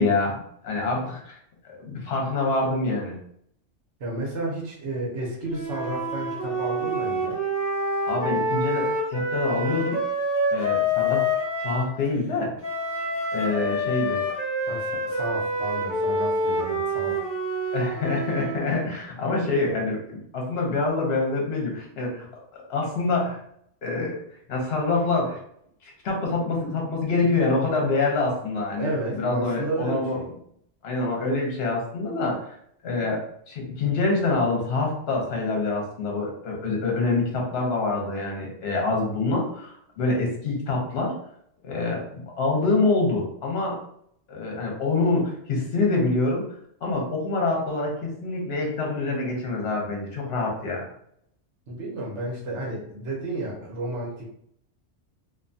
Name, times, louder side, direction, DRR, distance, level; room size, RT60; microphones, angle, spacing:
voice 1, 0.0-1.4 1.6-3.2 8.1-10.0 10.5-11.3 11.6-12.5 13.3-14.2 17.7-23.4 23.8-24.1 24.5-25.4 26.0-30.2 30.8-32.5 32.8-41.1 41.6-43.8 44.3-46.4 46.8-50.9, left 3 dB, 60° left, -1 dB, 1.0 m, -26 dB
voice 2, 4.0-7.4 14.7-17.2 28.8-30.3 51.7-54.3, right 2 dB, 75° right, -3 dB, 1.1 m, -32 dB
Wind instrument woodwind instrument, 5.5-11.9 12.6-18.6, equal, 20° left, 0.6 m, -27 dB
2.6 x 2.2 x 2.6 m, 0.68 s
omnidirectional pair, 1.2 m